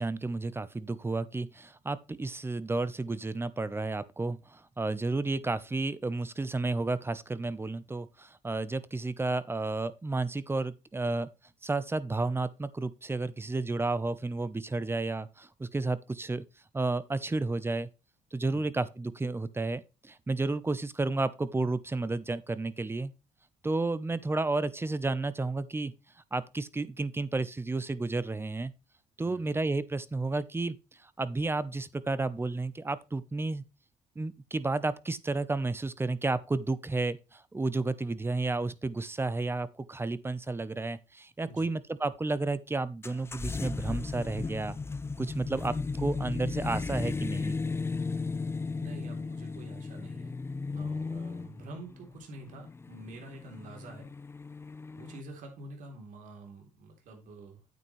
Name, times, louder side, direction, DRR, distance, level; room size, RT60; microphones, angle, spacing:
voice 1, 0.0-11.3 11.6-16.4 16.7-17.9 18.3-23.1 23.6-25.9 26.3-28.7 29.2-30.8 31.0-33.6 34.2-44.8 45.2-47.6, right 3 dB, 15° right, 0.8 m, -32 dB
voice 2, 29.2-29.5 41.5-41.7 48.8-50.4 50.7-54.1 55.0-57.6, right 2 dB, 70° right, 3.4 m, -47 dB
sound 1, 43.0-55.2, left 4 dB, 20° left, 0.4 m, -35 dB
9.2 x 8.2 x 3.2 m
cardioid pair, 85°, 14 cm